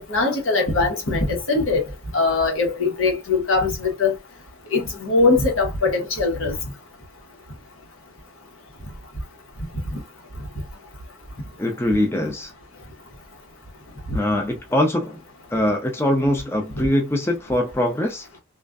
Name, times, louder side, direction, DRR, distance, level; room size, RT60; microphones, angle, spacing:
voice 1, 0.0-1.8 2.1-4.1 4.7-6.5 9.9-10.0 14.1-14.2 16.7-16.9, left 3 dB, 75° left, 1.0 m, -21 dB
voice 2, 11.6-12.5 14.1-15.2 15.5-18.3, left 1 dB, 10° left, 0.4 m, -22 dB
2.4 x 2.4 x 2.2 m
head